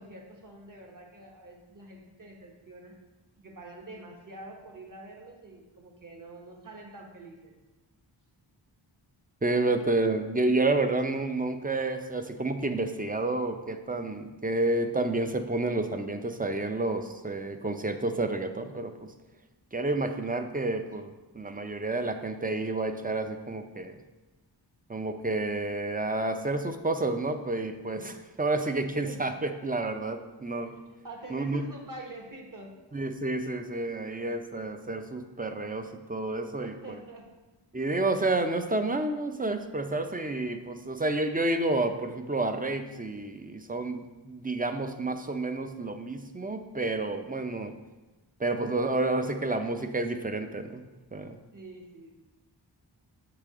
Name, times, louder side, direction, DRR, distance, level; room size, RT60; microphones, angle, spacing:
voice 1, 0.0-3.0 3.4-7.5 27.9-28.1 29.0-29.4 30.7-30.8 31.0-32.8 36.5-37.3 51.5-52.2, right 2 dB, 45° right, 0 dB, 1.3 m, -46 dB
voice 2, 9.4-18.9 19.7-24.0 24.9-30.7 31.3-31.7 32.9-37.0 37.7-47.7 48.4-50.8 51.1-51.4, right 2 dB, 20° right, 7 dB, 0.5 m, -30 dB
6.7 x 5.0 x 3.6 m, 1.1 s
wide cardioid pair, 45°, 44 cm